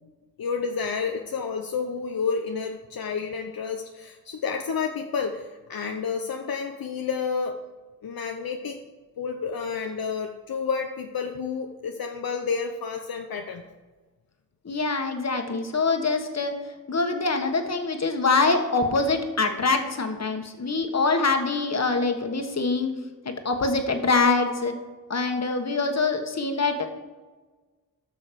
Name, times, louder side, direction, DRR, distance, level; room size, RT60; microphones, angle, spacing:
voice 1, 0.4-7.6 8.0-8.8 9.2-13.6, left 5 dB, 75° left, 3 dB, 0.8 m, -30 dB
voice 2, 14.6-16.6 16.9-22.9 23.2-24.7 25.1-26.9, left 3 dB, 45° left, 5 dB, 1.6 m, -24 dB
13.5 x 6.3 x 5.2 m, 1.3 s
cardioid pair, 65°, 36 cm